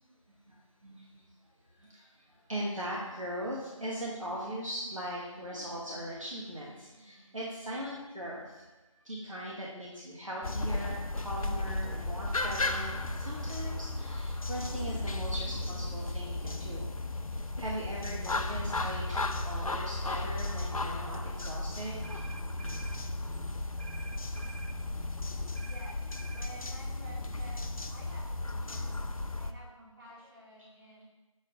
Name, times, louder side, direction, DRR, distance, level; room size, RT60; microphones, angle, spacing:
voice 1, 0.8-1.2 1.8-2.1 2.5-8.6 9.0-16.9 17.6-22.2, equal, 70° right, -5 dB, 1.3 m, -39 dB
sound 1, 10.4-29.5, left 2 dB, 85° left, 0.5 m, -35 dB
sound 2, 22.0-23.0 23.8-24.8 25.6-26.5, right 4 dB, 40° left, 0.5 m, -49 dB
voice 2, 25.6-26.0 26.3-29.0 29.4-31.0, right 1 dB, 45° right, -7 dB, 2.2 m, -51 dB
6.6 x 4.5 x 3.7 m, 1.1 s
figure-of-eight pair, 180°, 18 cm